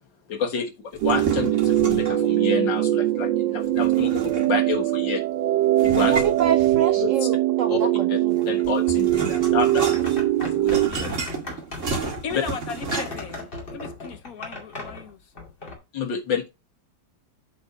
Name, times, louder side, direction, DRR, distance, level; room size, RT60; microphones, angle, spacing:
voice 1, 0.3-0.7 1.0-5.2 5.8-6.1 7.0-7.3 7.7-8.2 8.5-9.9 10.4-11.1 12.3-12.4 15.9-16.5, left 6 dB, 85° left, 2.2 m, -29 dB
sound 1, 0.9-2.3 3.8-4.7 5.8-7.2 8.3-13.4, right 4 dB, 45° right, 2.1 m, -32 dB
sound 2, 1.0-10.9, right 14 dB, 90° right, 1.3 m, -22 dB
voice 2, 6.0-8.4, right 8 dB, 65° right, 0.8 m, -27 dB
sound 3, 9.4-15.8, left 2 dB, 30° left, 2.4 m, -38 dB
voice 3, 12.2-15.2, left 6 dB, 55° left, 1.4 m, -36 dB
7.9 x 4.3 x 5.2 m
omnidirectional pair, 1.9 m